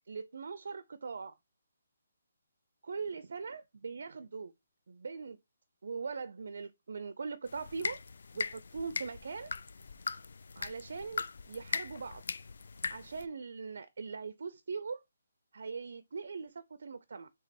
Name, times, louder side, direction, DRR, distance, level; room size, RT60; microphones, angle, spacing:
voice 1, 0.1-1.3 2.8-4.5 4.9-5.4 5.8-8.0 8.3-9.5 10.6-12.2 12.9-15.0 15.5-17.3, right 5 dB, 65° right, 0.4 m, -41 dB
sound 1, 7.5-13.3, left 4 dB, 65° left, 0.3 m, -40 dB
3.6 x 3.1 x 4.1 m
hypercardioid pair, 165°, 0 cm